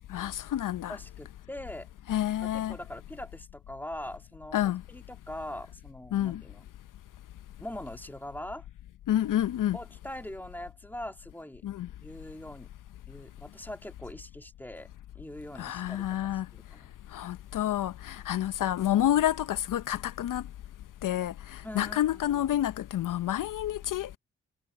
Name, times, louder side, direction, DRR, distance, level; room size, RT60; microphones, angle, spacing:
voice 1, 0.1-1.0 2.1-2.8 4.5-4.8 6.1-6.4 9.1-9.8 11.6-11.9 15.6-16.5 17.1-20.4 21.0-24.2, left 12 dB, 65° left, 0.9 m, -29 dB
voice 2, 0.9-1.9 2.4-6.6 7.6-8.6 9.7-11.6 12.0-12.7 13.1-14.9 15.1-16.9 21.6-22.4, left 1 dB, 5° left, 2.5 m, -42 dB
hypercardioid pair, 40°, 35 cm